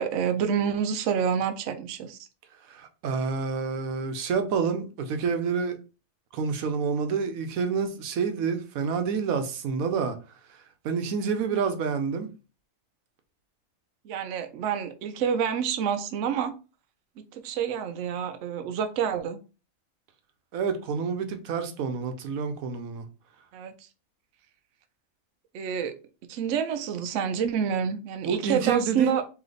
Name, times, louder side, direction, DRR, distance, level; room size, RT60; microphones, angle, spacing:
voice 1, 0.0-2.2 14.0-16.5 17.3-19.4 23.5-23.7 25.5-25.9 26.3-29.2, right 7 dB, 70° right, 0.9 m, -28 dB
voice 2, 2.7-5.8 6.3-10.2 10.5-12.3 20.5-23.1 28.3-29.1, right 5 dB, 90° right, 1.1 m, -28 dB
3.3 x 3.2 x 3.9 m
omnidirectional pair, 1.4 m